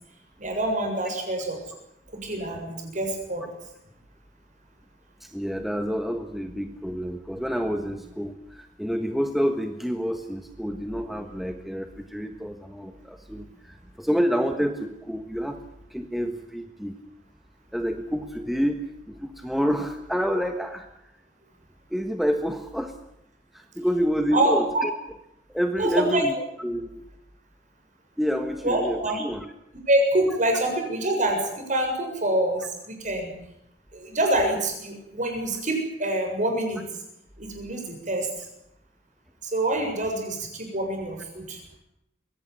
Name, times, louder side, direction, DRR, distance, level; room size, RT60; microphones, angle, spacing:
voice 1, 0.4-1.6 2.1-3.5 24.3-24.8 25.8-26.2 28.6-29.2 29.9-33.3 33.9-36.8 37.4-38.5 39.4-41.6, right 1 dB, 45° right, 3 dB, 7.3 m, -26 dB
voice 2, 5.2-15.6 15.9-17.0 17.7-20.9 21.9-22.9 23.5-24.9 25.5-27.0 28.2-29.5 39.8-39.9, equal, ahead, 6 dB, 1.4 m, -28 dB
23.5 x 17.5 x 9.9 m, 0.81 s
head